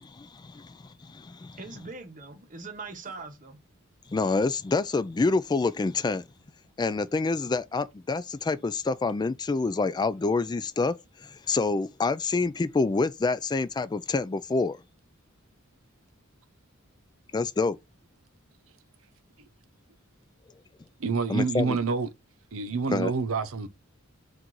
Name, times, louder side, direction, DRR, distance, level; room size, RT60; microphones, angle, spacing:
voice 1, 0.0-1.6 4.1-6.2 6.8-10.9 11.3-14.8 17.3-17.8 21.3-21.8 22.9-23.1, left 3 dB, 20° left, 0.3 m, -27 dB
voice 2, 1.6-3.6, right 3 dB, 40° right, 1.0 m, -41 dB
voice 3, 21.0-22.1 22.5-23.7, right 4 dB, 75° right, 0.7 m, -27 dB
4.5 x 2.5 x 3.7 m
head